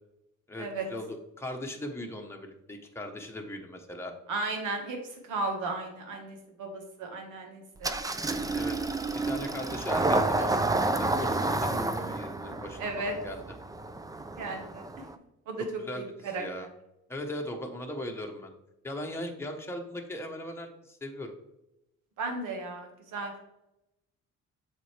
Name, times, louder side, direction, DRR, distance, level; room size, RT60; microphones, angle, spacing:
voice 1, 0.5-4.1 8.5-8.8 9.2-13.4 15.9-16.7 17.1-18.5 18.8-21.3, left 1 dB, 10° left, 2 dB, 1.1 m, -38 dB
voice 2, 4.3-7.9 12.8-13.1 14.4-14.8 15.5-16.7 22.2-23.3, right 3 dB, 80° right, 3 dB, 1.6 m, -35 dB
Engine starting, 7.8-15.1, right 2 dB, 10° right, 0.4 m, -30 dB
7.5 x 4.1 x 3.3 m, 0.89 s
cardioid pair, 90°, 30 cm